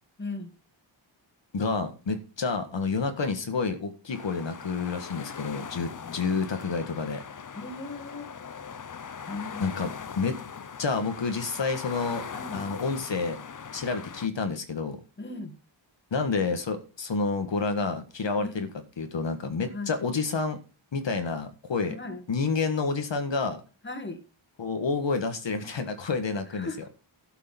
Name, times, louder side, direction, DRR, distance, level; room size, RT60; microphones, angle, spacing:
voice 1, 0.2-0.5 6.0-6.2 7.5-8.4 9.3-9.7 12.3-12.7 15.2-15.6 18.4-18.7 19.7-20.0 21.9-22.2 23.8-24.2 26.5-26.9, left 2 dB, 25° left, 2.2 m, -38 dB
voice 2, 1.5-7.2 9.6-9.9 10.2-10.4 10.8-12.2 12.5-13.4 13.7-15.0 16.1-18.7 19.0-20.6 20.9-21.9 22.3-23.6 24.6-26.7, left 4 dB, 65° left, 1.7 m, -29 dB
sound 1, 4.1-14.3, left 6 dB, 40° left, 0.8 m, -40 dB
12.0 x 6.8 x 7.0 m
wide cardioid pair, 150°, 48 cm